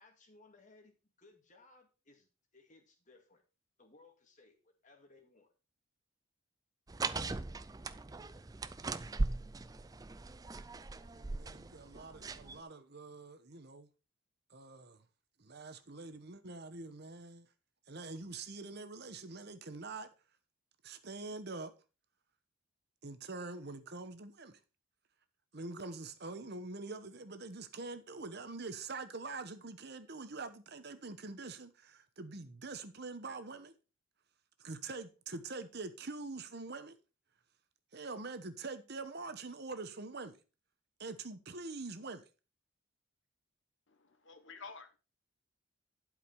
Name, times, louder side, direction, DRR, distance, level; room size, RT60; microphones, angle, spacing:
voice 1, 0.0-3.4 3.8-5.5, left 3 dB, 35° left, 2.1 m, -63 dB
sound 1, 6.9-12.6, right 3 dB, 15° right, 0.4 m, -39 dB
voice 2, 11.0-13.9 14.5-15.0 15.4-17.5 17.9-20.1 20.8-21.7 23.0-24.6 25.5-33.7 34.6-36.9 37.9-40.4 41.0-42.2, right 3 dB, 50° right, 1.0 m, -45 dB
voice 3, 43.9-45.0, left 4 dB, 55° left, 1.1 m, -51 dB
11.5 x 5.0 x 5.3 m
head